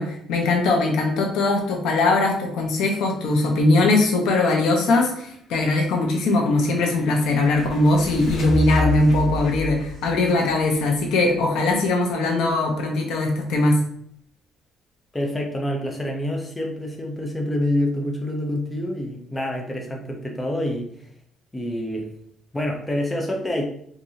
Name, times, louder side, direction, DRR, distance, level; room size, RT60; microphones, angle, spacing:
voice 1, 0.0-13.8, left 2 dB, 80° left, 2 dB, 0.9 m, -20 dB
sound 1, 5.9-11.6, left 2 dB, 55° left, 1.3 m, -30 dB
voice 2, 15.1-21.1 21.5-22.1 22.5-23.7, left 1 dB, 10° left, 0 dB, 0.5 m, -27 dB
4.7 x 2.6 x 2.7 m, 0.66 s
cardioid pair, 170°, 0 cm